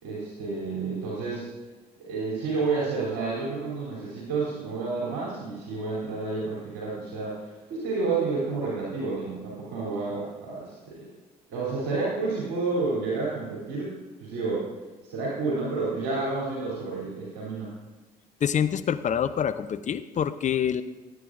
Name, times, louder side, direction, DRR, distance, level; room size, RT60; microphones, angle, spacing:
voice 1, 0.0-1.5 2.0-11.0 11.5-14.7 15.1-17.7, right 3 dB, 60° right, -6 dB, 3.1 m, -30 dB
voice 2, 18.4-20.8, left 8 dB, 35° left, 11 dB, 0.7 m, -26 dB
18.0 x 8.9 x 2.6 m, 1.2 s
figure-of-eight pair, 50°, 20 cm